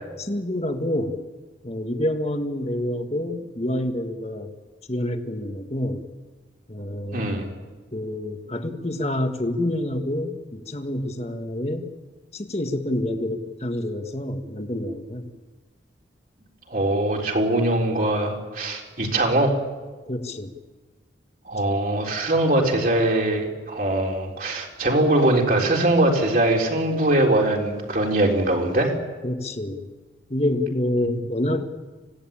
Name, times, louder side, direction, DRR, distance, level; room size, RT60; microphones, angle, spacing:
voice 1, 0.2-1.2 1.6-4.5 4.9-6.1 6.7-7.3 7.9-11.9 12.3-15.3 20.1-20.5 29.2-29.9 30.3-31.6, left 1 dB, 35° left, 6 dB, 1.6 m, -27 dB
voice 2, 7.1-7.5 16.7-19.5 21.5-28.9 31.0-31.2, right 1 dB, 45° right, 0 dB, 3.9 m, -22 dB
25.5 x 17.0 x 8.8 m, 1.3 s
head